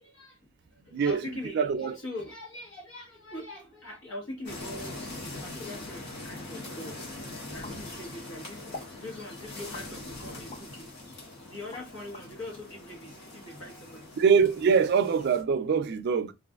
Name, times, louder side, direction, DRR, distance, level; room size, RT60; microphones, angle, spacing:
voice 1, 0.0-10.9 11.4-14.1, left 1 dB, 75° left, 1.2 m, -42 dB
voice 2, 1.5-1.9 14.2-16.3, right 6 dB, 55° right, 0.3 m, -23 dB
sound 1, 4.4-15.4, left 2 dB, 60° left, 1.2 m, -42 dB
sound 2, 7.6-8.3 8.7-9.0 9.7-10.7 11.2-12.3, left 2 dB, 35° left, 0.6 m, -45 dB
3.2 x 2.4 x 2.3 m
head